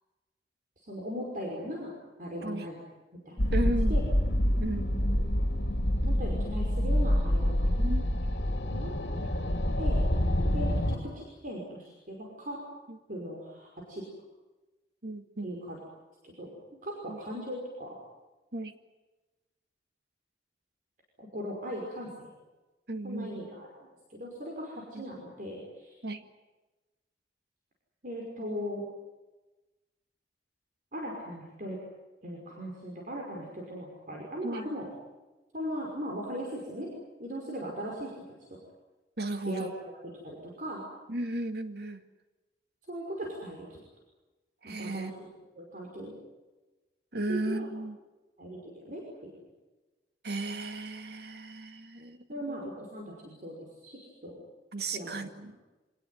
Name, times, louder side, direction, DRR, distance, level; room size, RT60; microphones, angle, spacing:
voice 1, 0.8-1.9 2.2-2.8 3.1-4.0 6.0-7.7 8.7-8.9 9.8-10.0 10.5-12.6 13.1-14.0 15.4-15.8 16.2-16.5 16.8-18.0 21.2-22.3 23.0-23.7 24.1-25.9 28.0-28.9 30.9-31.8 32.2-34.9 35.5-36.9 37.2-38.1 38.5-38.6 39.5-39.7 40.2-40.8 42.9-43.8 44.6-45.3 45.6-46.2 47.3-47.7 48.4-49.3 52.3-53.5 53.8-54.4 54.9-55.2 55.4-55.5, equal, 50° right, -1 dB, 5.6 m, -38 dB
sound 1, 3.4-10.9, equal, 75° left, 2.9 m, -27 dB
voice 2, 3.5-4.0 4.6-5.3 7.8-8.1 9.2-9.3 12.9-13.0 15.0-15.6 17.1-17.2 18.5-18.8 22.9-23.4 24.9-25.0 26.0-26.2 34.4-34.6 39.2-39.7 41.1-42.0 44.6-45.1 47.1-48.0 50.2-52.6 54.7-55.6, right 2 dB, 65° right, 8 dB, 2.1 m, -35 dB
26.0 x 19.0 x 9.4 m, 1.1 s
head